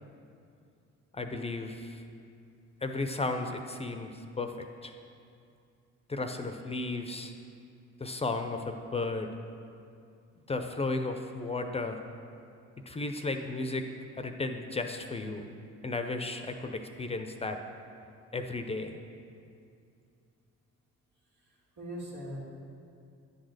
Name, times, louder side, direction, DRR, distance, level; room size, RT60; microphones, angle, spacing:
voice 1, 1.1-2.0 2.8-4.5 4.8-4.9 6.1-7.3 8.0-9.3 10.5-12.0 12.9-13.9 14.2-15.5 15.8-17.6 18.3-18.9, left 3 dB, 20° left, 6 dB, 0.5 m, -34 dB
voice 2, 21.4-22.4, equal, 85° right, -5 dB, 2.2 m, -41 dB
9.9 x 4.0 x 6.4 m, 2.4 s
cardioid pair, 90°, 30 cm